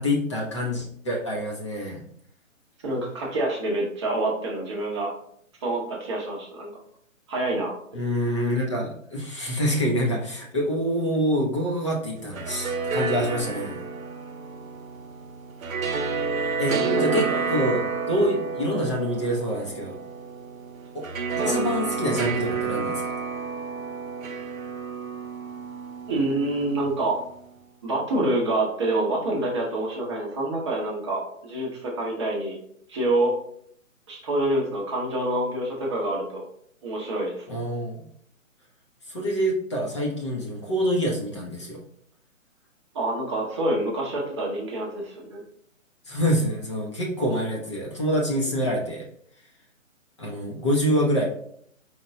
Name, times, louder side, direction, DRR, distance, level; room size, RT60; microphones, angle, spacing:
voice 1, 0.0-2.0 7.9-13.8 16.6-20.0 20.9-21.0 21.4-23.1 37.5-38.0 39.1-41.8 46.1-49.0 50.2-51.3, equal, 25° left, -2 dB, 0.6 m, -26 dB
voice 2, 2.8-5.1 5.6-6.7 7.3-7.7 16.7-17.4 21.4-21.6 26.1-27.2 27.8-32.6 32.9-33.3 34.1-36.5 36.8-37.5 42.9-45.4, right 1 dB, 20° right, -2 dB, 0.7 m, -27 dB
sound 1, 12.2-27.4, right 5 dB, 85° right, 0.7 m, -30 dB
4.3 x 2.2 x 3.8 m, 0.65 s
hypercardioid pair, 150°, 40 cm